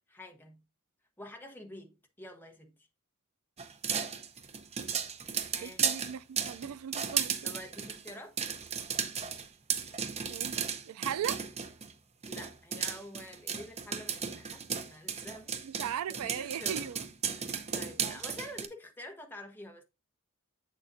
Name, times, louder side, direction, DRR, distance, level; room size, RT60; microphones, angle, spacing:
voice 1, 0.1-0.6 1.2-2.7 5.5-5.8 7.4-8.4 12.2-15.6 16.1-16.9 17.3-19.8, left 1 dB, 10° left, 1.1 m, -48 dB
sound 1, 3.6-11.9 12.2-18.7, right 7 dB, 30° right, 0.7 m, -35 dB
voice 2, 5.6-7.4 10.3-11.4 15.6-17.0 18.0-18.2, right 9 dB, 80° right, 0.3 m, -38 dB
7.6 x 6.5 x 2.6 m
head